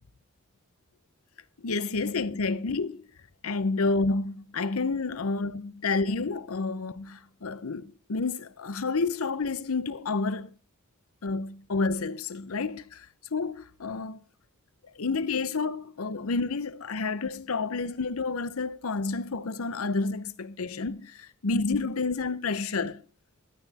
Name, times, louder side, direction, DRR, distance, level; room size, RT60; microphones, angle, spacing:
voice 1, 1.6-3.0 3.4-10.5 11.2-14.2 15.0-23.0, left 3 dB, 90° left, 0.8 m, -30 dB
13.0 x 9.1 x 4.2 m
head